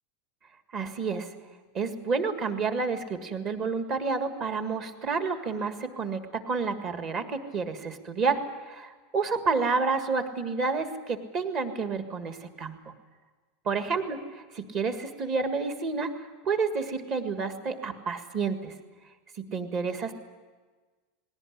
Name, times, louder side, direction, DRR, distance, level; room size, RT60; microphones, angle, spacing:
voice 1, 0.7-1.3 1.7-12.8 13.7-18.7 19.4-20.1, right 4 dB, 30° right, 8 dB, 1.7 m, -30 dB
19.5 x 17.5 x 9.9 m, 1.4 s
supercardioid pair, 170°, 0 cm